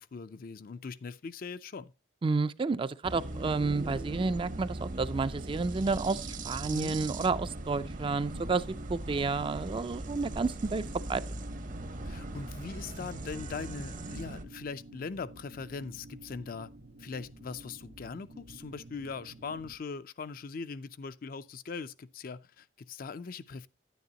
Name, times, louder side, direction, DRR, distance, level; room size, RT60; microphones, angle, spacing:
voice 1, 0.0-1.9 6.7-7.0 12.1-16.7 17.0-23.7, left 5 dB, 55° left, 0.5 m, -41 dB
voice 2, 2.2-8.6 8.9-10.8 11.1-11.2, right 4 dB, 30° right, 0.4 m, -30 dB
sound 1, 3.0-14.4, right 2 dB, 50° right, 0.8 m, -40 dB
sound 2, 3.6-19.8, right 1 dB, 65° right, 1.3 m, -51 dB
10.0 x 9.4 x 2.8 m
head